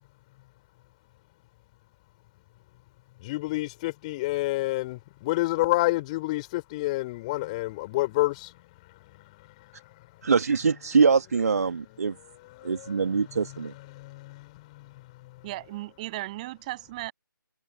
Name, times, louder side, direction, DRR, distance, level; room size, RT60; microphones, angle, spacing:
voice 1, 3.2-8.5 12.5-13.0 13.9-14.5, left 19 dB, 20° left, 3.3 m, -28 dB
voice 2, 10.2-12.1 12.6-13.7, right 5 dB, 45° right, 2.0 m, -23 dB
voice 3, 15.4-17.1, right 18 dB, 20° right, 7.2 m, -36 dB
figure-of-eight pair, 150°, 11 cm